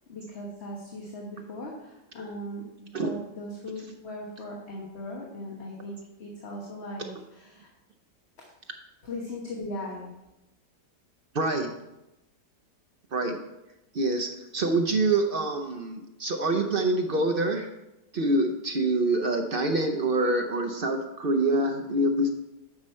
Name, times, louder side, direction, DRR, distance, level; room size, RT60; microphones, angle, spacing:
voice 1, 0.1-7.7 9.0-10.1, left 1 dB, 40° left, -2 dB, 1.4 m, -39 dB
voice 2, 11.3-11.7 13.1-13.4 13.9-17.7 18.1-22.3, right 2 dB, 55° right, 4 dB, 0.6 m, -26 dB
9.9 x 6.2 x 4.3 m, 0.94 s
omnidirectional pair, 1.8 m